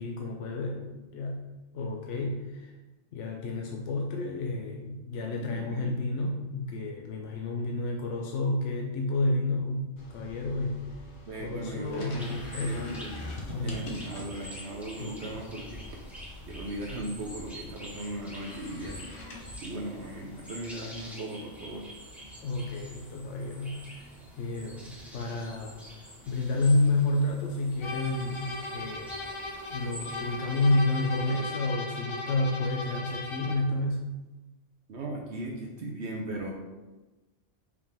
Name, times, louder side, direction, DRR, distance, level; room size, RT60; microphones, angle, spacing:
voice 1, 0.0-1.4 1.7-2.7 3.1-10.9 11.4-13.0 13.5-13.8 15.0-15.4 22.4-25.8 26.3-29.2 29.7-34.0, left 2 dB, 85° left, 1 dB, 1.0 m, -30 dB
voice 2, 5.3-5.9 11.3-13.1 13.6-15.8 16.5-19.2 19.6-21.8 34.9-36.5, right 1 dB, 70° right, -1 dB, 1.1 m, -38 dB
sound 1, 10.0-20.5, left 1 dB, 70° left, 1.3 m, -44 dB
sound 2, 12.2-31.4, equal, ahead, 1.1 m, -47 dB
sound 3, 27.8-33.7, left 2 dB, 35° left, 0.5 m, -37 dB
5.4 x 5.0 x 3.5 m, 1.1 s
omnidirectional pair, 1.2 m